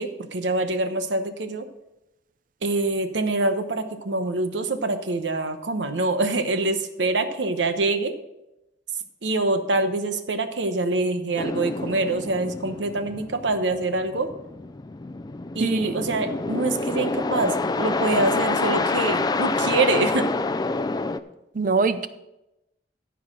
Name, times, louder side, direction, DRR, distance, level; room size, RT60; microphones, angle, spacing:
voice 1, 0.0-1.7 2.6-8.2 9.2-14.3 15.5-20.3, right 2 dB, 80° right, 8 dB, 1.0 m, -25 dB
sound 1, 11.4-21.2, left 3 dB, 20° left, 0.4 m, -27 dB
voice 2, 15.6-16.0 21.5-22.1, right 4 dB, 50° right, 12 dB, 0.6 m, -23 dB
13.5 x 4.8 x 6.1 m, 0.92 s
head